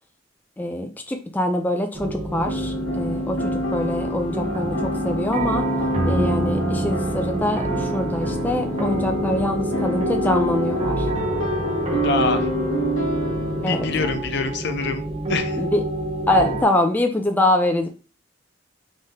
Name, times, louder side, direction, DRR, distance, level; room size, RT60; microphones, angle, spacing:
voice 1, 0.6-5.6 6.1-11.1 13.6-13.9 15.6-15.8 16.3-17.9, left 1 dB, 10° left, 4 dB, 0.3 m, -24 dB
sound 1, 1.9-16.6, right 1 dB, 35° right, 0.7 m, -27 dB
sound 2, 2.4-14.2, equal, 80° left, 1.5 m, -28 dB
voice 2, 12.0-12.5 13.6-15.0 15.3-15.6, left 4 dB, 65° left, 8 dB, 0.6 m, -25 dB
3.6 x 3.5 x 2.7 m, 0.35 s
head